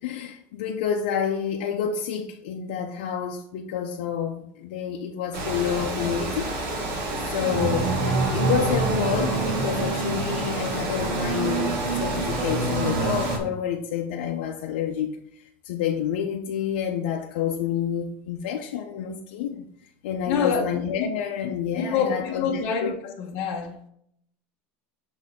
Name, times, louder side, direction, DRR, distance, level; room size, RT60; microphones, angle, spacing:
voice 1, 0.0-6.6 7.3-7.9 8.3-15.2 15.6-19.7 20.0-22.9, left 8 dB, 85° left, 0.6 m, -28 dB
Water, 5.3-13.4, right 2 dB, 50° right, 1.6 m, -30 dB
sound 1, 7.5-13.4, right 3 dB, 70° right, 1.4 m, -27 dB
voice 2, 20.3-20.7 21.0-21.1 21.7-23.9, left 6 dB, 50° left, 1.0 m, -27 dB
6.6 x 4.1 x 3.6 m
cardioid pair, 165°, 6 cm